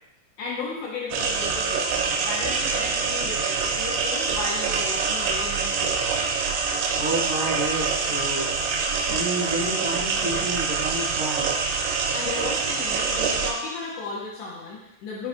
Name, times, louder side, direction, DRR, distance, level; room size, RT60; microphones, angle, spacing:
voice 1, 0.4-6.2 12.1-15.3, left 4 dB, 75° left, -5 dB, 3.0 m, -34 dB
sound 1, 1.1-13.5, right 5 dB, 85° right, 2.4 m, -25 dB
voice 2, 7.0-8.5 9.0-11.5, right 1 dB, 30° right, -10 dB, 0.8 m, -29 dB
10.0 x 4.1 x 2.5 m, 0.88 s
omnidirectional pair, 5.4 m